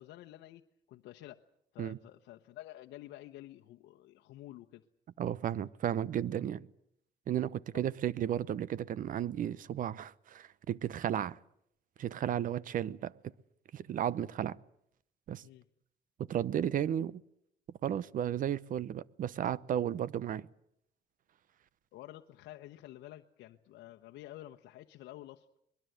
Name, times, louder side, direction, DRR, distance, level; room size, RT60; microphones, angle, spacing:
voice 1, 0.0-1.4 1.7-4.8 7.7-7.8 11.1-11.2 15.4-15.6 21.9-25.4, left 15 dB, 80° left, 1.0 m, -50 dB
voice 2, 5.2-6.7 7.3-11.4 12.0-13.1 13.7-14.6 15.3-15.4 16.2-17.2 17.8-20.5, right 10 dB, 55° right, 0.9 m, -34 dB
23.0 x 21.5 x 8.0 m
cardioid pair, 110°, 17 cm